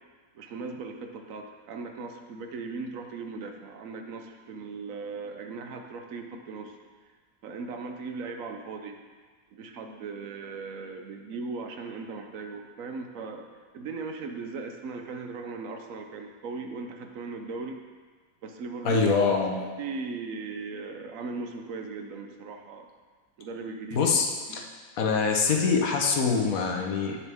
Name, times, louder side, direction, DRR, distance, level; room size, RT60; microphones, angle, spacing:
voice 1, 0.3-6.8 7.4-9.0 9.5-13.5 13.7-17.8 18.4-19.2 19.6-22.9 23.4-24.1 24.5-24.7, right 4 dB, 70° right, 4 dB, 1.0 m, -38 dB
voice 2, 18.8-19.6 23.9-24.6 25.0-27.2, left 5 dB, 70° left, 2 dB, 1.3 m, -24 dB
8.6 x 6.9 x 3.5 m, 1.5 s
omnidirectional pair, 1.5 m